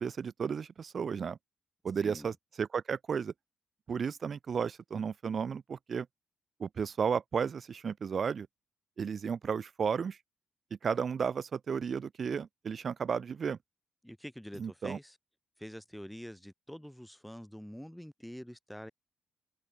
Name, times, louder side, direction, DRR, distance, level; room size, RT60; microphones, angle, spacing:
voice 1, 0.0-1.4 1.8-3.3 3.9-6.1 6.6-8.5 9.0-10.2 10.8-13.6 14.6-15.0, right 6 dB, 50° right, 0.8 m, -33 dB
voice 2, 14.0-15.1 15.6-18.9, equal, 5° left, 1.5 m, -46 dB
supercardioid pair, 65°, 0 cm